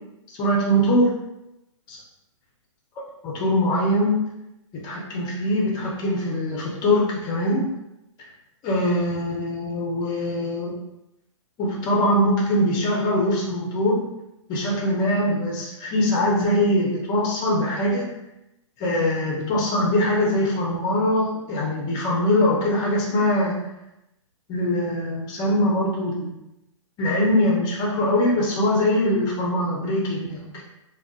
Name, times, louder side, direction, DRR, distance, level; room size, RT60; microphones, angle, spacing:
voice 1, 0.4-1.1 1.9-2.0 3.0-4.2 4.7-7.6 8.6-10.8 11.6-14.0 14.5-18.1 18.8-23.7 24.5-26.3 27.0-30.6, left 1 dB, 25° left, -2 dB, 0.7 m, -22 dB
2.4 x 2.3 x 2.3 m, 0.89 s
hypercardioid pair, 125°, 16 cm